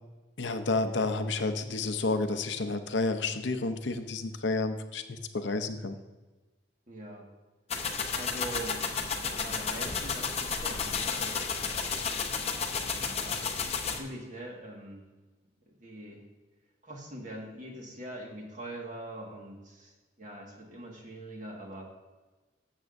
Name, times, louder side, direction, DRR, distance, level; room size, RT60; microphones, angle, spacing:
voice 1, 0.4-6.0, left 3 dB, 70° left, 8 dB, 0.7 m, -30 dB
voice 2, 6.9-7.2 8.1-8.8 9.1-12.0 13.0-13.4 13.9-15.0 15.8-16.2 16.8-19.9 20.2-21.9, right 1 dB, 40° right, -1 dB, 1.7 m, -43 dB
sound 1, 7.7-14.0, left 5 dB, 30° left, 0.7 m, -32 dB
12.5 x 7.4 x 2.6 m, 1.2 s
head